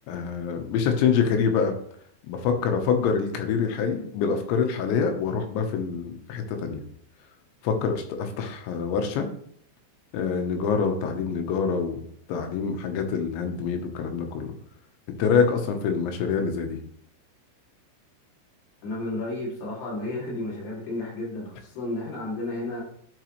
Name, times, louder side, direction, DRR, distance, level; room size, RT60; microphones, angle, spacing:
voice 1, 0.1-1.7 2.2-6.8 7.6-9.3 10.1-12.0 12.3-14.5 15.2-16.8, left 6 dB, 85° left, 5 dB, 3.4 m, -25 dB
voice 2, 18.8-22.8, left 2 dB, 70° left, -4 dB, 4.5 m, -32 dB
10.5 x 5.1 x 3.1 m, 0.63 s
omnidirectional pair, 5.1 m